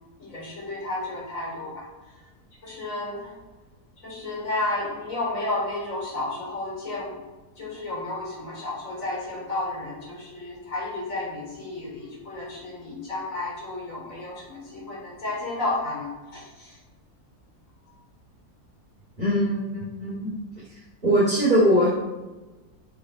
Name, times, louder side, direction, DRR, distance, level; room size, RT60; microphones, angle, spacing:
voice 1, 0.2-1.8 2.6-3.3 4.0-7.1 7.6-16.4, left 2 dB, 55° left, -4 dB, 4.5 m, -32 dB
voice 2, 19.2-20.3 20.7-21.9, equal, 30° right, -7 dB, 3.4 m, -22 dB
12.0 x 8.5 x 5.5 m, 1.1 s
omnidirectional pair, 1.7 m